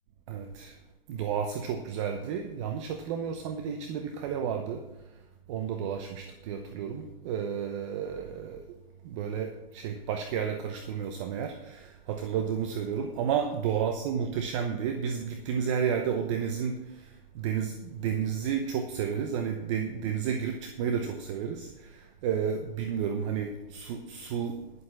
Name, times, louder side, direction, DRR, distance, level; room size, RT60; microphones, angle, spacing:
voice 1, 0.3-0.7 1.1-4.8 5.5-8.6 9.0-17.1 17.3-24.6, right 7 dB, 30° right, 6 dB, 0.8 m, -31 dB
11.0 x 7.3 x 6.3 m, 1.0 s
hypercardioid pair, 145°, 29 cm